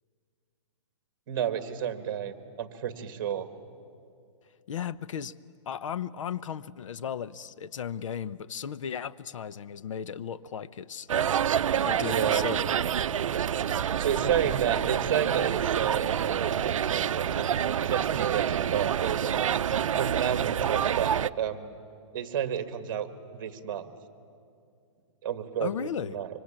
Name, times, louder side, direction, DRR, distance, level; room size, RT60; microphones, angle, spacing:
voice 1, 1.3-3.5 12.0-12.5 14.0-17.5 17.9-19.5 20.0-21.7 22.1-23.1 23.3-23.9 25.2-26.3, right 9 dB, 45° right, 9 dB, 1.8 m, -31 dB
voice 2, 4.7-5.3 5.7-11.1 11.8-12.7 14.1-14.6 25.6-26.2, left 8 dB, 75° left, 16 dB, 0.8 m, -36 dB
sound 1, 11.1-21.3, right 9 dB, 80° right, 0.6 m, -27 dB
sound 2, 12.8-18.2, right 2 dB, 5° left, 3.0 m, -47 dB
25.5 x 25.0 x 8.9 m, 2.4 s
hypercardioid pair, 170°, 17 cm